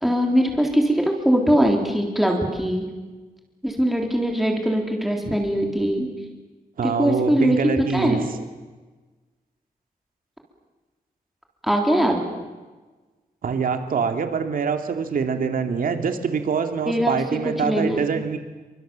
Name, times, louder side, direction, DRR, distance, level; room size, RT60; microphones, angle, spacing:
voice 1, 0.0-2.9 3.6-6.1 6.8-8.3 11.6-12.2 16.9-18.0, equal, ahead, 1 dB, 3.6 m, -21 dB
voice 2, 6.8-8.2 13.4-18.4, right 5 dB, 65° right, 6 dB, 2.5 m, -24 dB
28.0 x 24.5 x 7.6 m, 1.3 s
wide cardioid pair, 175°, 15 cm